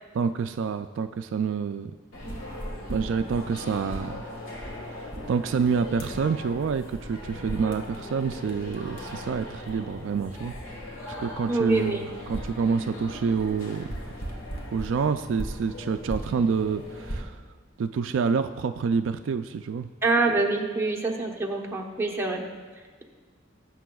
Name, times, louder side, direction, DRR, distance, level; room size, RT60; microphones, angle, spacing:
voice 1, 0.1-1.9 2.9-4.2 4.6-4.7 5.3-10.5 11.2-13.9 14.7-17.4 17.8-19.9, right 5 dB, 65° right, 9 dB, 0.3 m, -27 dB
sound 1, 2.1-17.2, equal, 80° left, 1.7 m, -38 dB
voice 2, 11.5-12.0 20.0-22.4, right 3 dB, 10° right, -1 dB, 1.0 m, -25 dB
19.0 x 7.5 x 2.3 m, 1.5 s
head